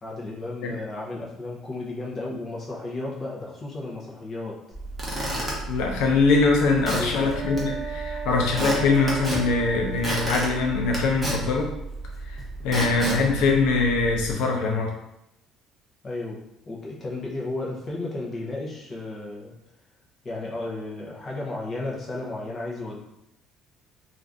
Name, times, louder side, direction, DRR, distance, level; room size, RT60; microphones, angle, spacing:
voice 1, 0.0-4.6 6.9-7.4 16.0-19.5 20.2-23.0, left 2 dB, 30° left, -4 dB, 0.6 m, -33 dB
Squeak / Wood, 4.7-14.3, right 1 dB, 10° right, 0.7 m, -32 dB
voice 2, 5.7-11.7 12.3-14.9, left 3 dB, 90° left, 0 dB, 0.5 m, -23 dB
sound 1, 7.1-11.1, right 6 dB, 40° right, 0.7 m, -37 dB
2.5 x 2.5 x 3.3 m, 0.83 s
cardioid pair, 160°, 0 cm